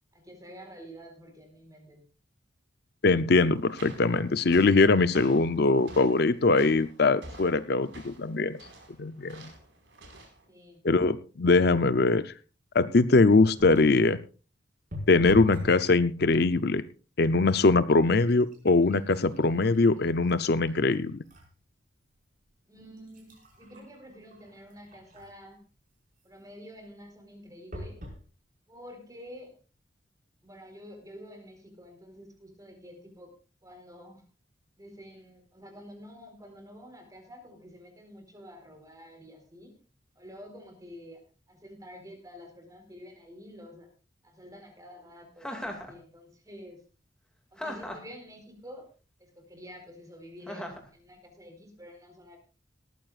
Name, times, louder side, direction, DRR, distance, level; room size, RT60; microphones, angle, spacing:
voice 1, 0.1-2.1 10.5-10.8 22.7-25.6 26.2-28.0 28.7-29.6 30.4-33.3 33.6-34.2 34.8-39.7 40.2-41.2 41.5-43.9 44.2-46.8 47.5-48.9 49.2-52.4, equal, 20° right, 4 dB, 4.2 m, -48 dB
voice 2, 3.0-8.6 9.0-9.5 10.8-12.3 12.7-14.2 15.1-16.8 17.2-21.2, left 3 dB, 60° left, 13 dB, 0.6 m, -22 dB
sound 1, 3.6-10.5, right 1 dB, 70° right, 5.0 m, -50 dB
sound 2, 13.6-14.0 14.9-15.8 16.2-16.7 17.4-17.5 17.9-21.5 22.0-22.1 22.8-25.5 27.7-28.2 28.9-29.0 29.3-29.4, left 1 dB, 45° right, 5.4 m, -43 dB
Chuckle chortle, 45.4-45.9 47.6-48.1 50.5-50.9, left 1 dB, 5° left, 2.2 m, -37 dB
18.5 x 14.0 x 2.5 m, 0.35 s
head